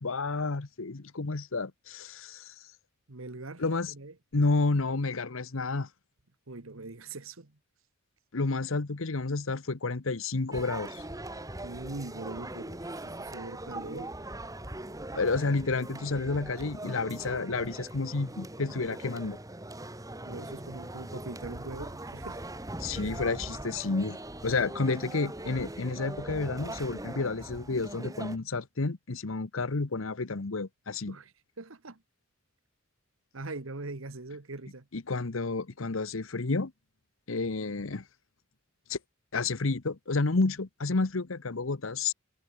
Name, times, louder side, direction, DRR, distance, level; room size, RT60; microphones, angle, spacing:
voice 1, 0.0-2.5 3.6-3.9 4.3-5.9 8.3-11.0 15.1-19.4 22.8-24.2 24.4-31.2 34.9-36.7 37.3-38.0 38.9-39.0 39.3-42.1, left 3 dB, 75° left, 1.0 m, -30 dB
voice 2, 3.1-4.1 6.5-7.6 11.6-14.1 20.2-22.5 31.1-32.0 33.3-34.9, right 2 dB, 75° right, 1.5 m, -42 dB
sound 1, 10.5-28.4, right 1 dB, 15° right, 2.6 m, -41 dB
head